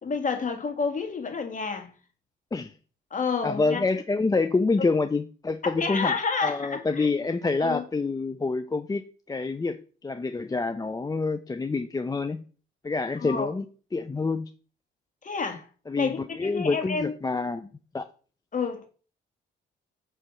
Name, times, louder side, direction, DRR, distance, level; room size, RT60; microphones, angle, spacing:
voice 1, 0.0-1.9 3.1-3.8 5.6-7.1 7.6-7.8 13.2-13.5 15.2-15.7 16.0-17.1 18.5-18.9, left 5 dB, 40° left, 1.9 m, -29 dB
voice 2, 3.4-6.1 6.4-9.0 9.3-12.4 12.8-13.7 13.9-14.5 15.9-18.1, left 3 dB, 20° left, 0.5 m, -27 dB
7.4 x 3.3 x 6.2 m
cardioid pair, 90°, 20 cm